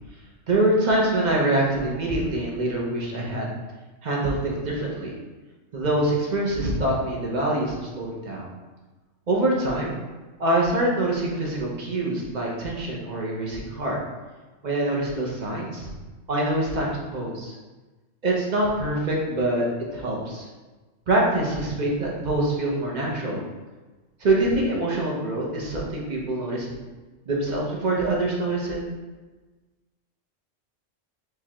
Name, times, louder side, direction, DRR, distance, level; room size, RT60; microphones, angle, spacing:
voice 1, 0.5-3.5 4.0-5.1 5.7-8.5 9.3-10.0 10.4-14.0 14.6-15.9 16.3-17.5 18.2-19.6 19.9-20.5 21.1-23.4 24.2-26.8 27.3-28.8, right 1 dB, 45° right, -3 dB, 0.6 m, -25 dB
4.7 x 2.2 x 2.9 m, 1.2 s
omnidirectional pair, 1.3 m